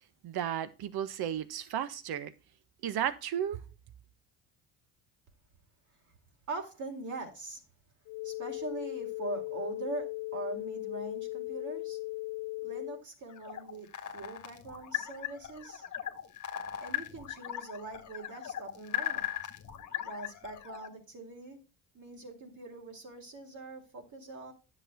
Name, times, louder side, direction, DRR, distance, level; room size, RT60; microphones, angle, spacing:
voice 1, 0.2-2.3 2.8-3.6, right 10 dB, 60° right, 1.4 m, -34 dB
voice 2, 6.5-7.6 8.2-12.0 12.6-15.8 16.8-19.4 20.0-21.6 21.9-24.5, right 2 dB, 45° right, 4.0 m, -42 dB
sound 1, 8.1-13.0, left 21 dB, 60° left, 0.6 m, -38 dB
sound 2, 13.3-20.9, left 11 dB, 45° left, 1.8 m, -38 dB
10.5 x 6.6 x 3.8 m
supercardioid pair, 75°, 42 cm